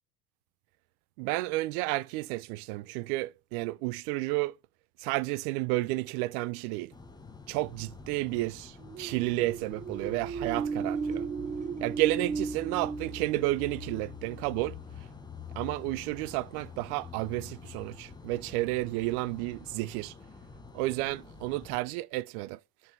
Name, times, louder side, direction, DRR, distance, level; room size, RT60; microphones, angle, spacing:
voice 1, 1.2-4.5 5.0-6.9 7.5-11.3 11.8-14.8 15.6-20.1 20.7-22.6, right 19 dB, 80° right, 0.5 m, -31 dB
sound 1, 6.9-21.8, left 4 dB, 10° left, 0.9 m, -47 dB
sound 2, 8.8-14.4, right 5 dB, 20° right, 0.5 m, -35 dB
6.0 x 5.3 x 4.4 m
cardioid pair, 135°, 44 cm